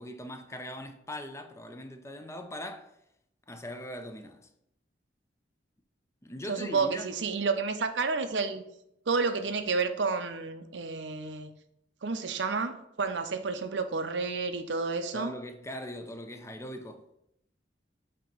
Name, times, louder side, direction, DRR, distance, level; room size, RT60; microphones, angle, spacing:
voice 1, 0.0-2.9 3.5-4.5 6.2-7.1 15.1-17.1, equal, 15° left, 0.5 m, -41 dB
voice 2, 6.5-8.6 9.1-11.5 12.0-15.3, right 4 dB, 85° right, 0.7 m, -30 dB
7.8 x 2.9 x 5.3 m
head